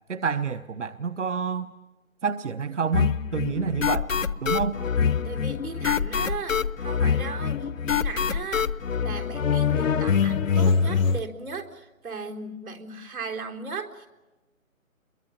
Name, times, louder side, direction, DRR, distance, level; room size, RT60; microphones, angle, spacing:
voice 1, 0.0-1.7 2.2-4.1 4.4-4.8, right 6 dB, 60° right, 13 dB, 1.0 m, -28 dB
sound 1, 2.9-11.2, left 6 dB, 70° left, 1.0 m, -24 dB
voice 2, 5.2-8.7 9.0-14.1, right 4 dB, 85° right, 3 dB, 4.2 m, -37 dB
29.5 x 23.0 x 7.2 m, 1.2 s
hypercardioid pair, 175°, 41 cm